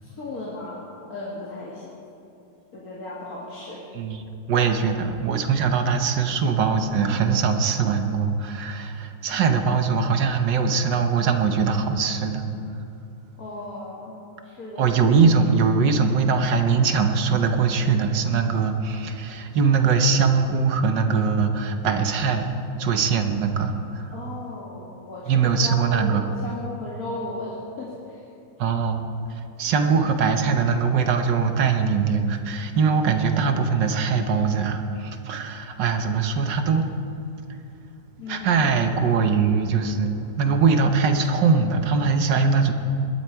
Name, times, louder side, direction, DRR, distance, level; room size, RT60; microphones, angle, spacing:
voice 1, 0.0-0.8 1.1-2.0 2.7-3.9 13.4-14.2 14.4-15.1 24.1-28.2 38.2-38.6, left 2 dB, 50° left, -6 dB, 2.4 m, -35 dB
voice 2, 3.9-12.5 14.8-24.1 25.3-26.2 28.6-36.9 38.3-42.7, right 5 dB, 75° right, 6 dB, 1.6 m, -22 dB
21.0 x 13.0 x 4.6 m, 2.6 s
omnidirectional pair, 2.0 m